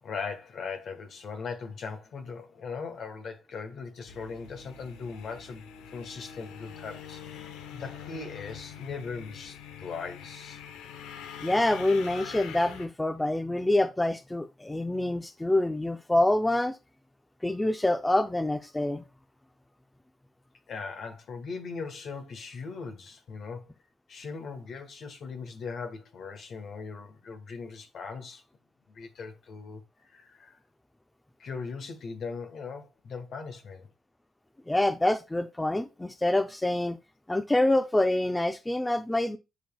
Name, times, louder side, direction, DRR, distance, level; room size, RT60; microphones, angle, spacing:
voice 1, 0.0-5.6 5.9-10.6 20.7-23.6 24.1-28.4 28.9-30.6 31.4-33.9, left 5 dB, 60° left, 1.4 m, -39 dB
sound 1, 4.1-12.9, left 7 dB, 80° left, 0.8 m, -44 dB
voice 2, 11.4-16.7 17.4-19.0 34.7-37.0 37.3-39.4, left 1 dB, 15° left, 0.6 m, -26 dB
10.0 x 5.4 x 2.3 m
hypercardioid pair, 50°, 0 cm